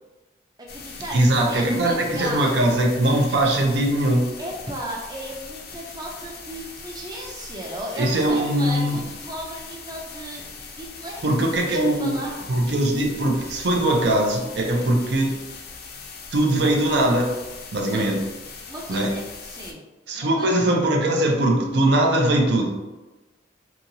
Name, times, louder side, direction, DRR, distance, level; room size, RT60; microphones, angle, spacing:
voice 1, 0.6-2.9 4.4-12.5 17.8-18.0 18.7-19.8 20.1-20.6, right 1 dB, 20° right, -2 dB, 0.4 m, -35 dB
sound 1, 0.7-19.7, left 5 dB, 55° left, 0.4 m, -40 dB
voice 2, 1.1-4.3 8.0-9.0 11.2-12.2 12.5-15.4 16.3-17.3 17.7-18.2 18.9-19.1 20.1-22.7, right 1 dB, 70° right, 1 dB, 0.5 m, -21 dB
2.9 x 2.8 x 2.6 m, 1.1 s
head